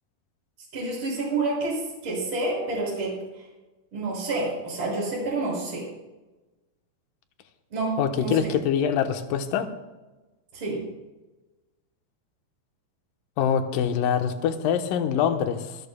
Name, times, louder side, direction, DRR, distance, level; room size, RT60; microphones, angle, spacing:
voice 1, 0.7-3.2 3.9-5.9 7.7-8.5 10.5-10.8, right 2 dB, 30° right, -5 dB, 6.8 m, -28 dB
voice 2, 8.0-9.7 13.4-15.8, left 8 dB, 70° left, 6 dB, 2.4 m, -24 dB
26.5 x 14.0 x 2.3 m, 1.1 s
omnidirectional pair, 4.5 m